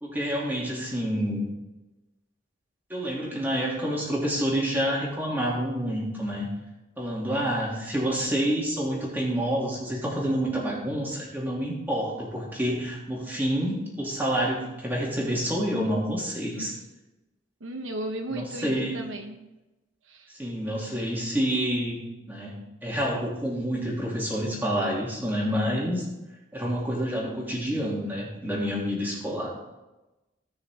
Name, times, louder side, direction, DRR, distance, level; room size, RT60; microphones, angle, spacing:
voice 1, 0.0-1.5 2.9-6.5 7.0-16.7 18.3-19.0 20.4-26.0 26.5-29.5, equal, 10° right, -4 dB, 2.9 m, -28 dB
voice 2, 17.6-19.5 20.1-20.3, right 1 dB, 85° right, 4 dB, 1.1 m, -35 dB
17.5 x 6.4 x 3.7 m, 1.0 s
head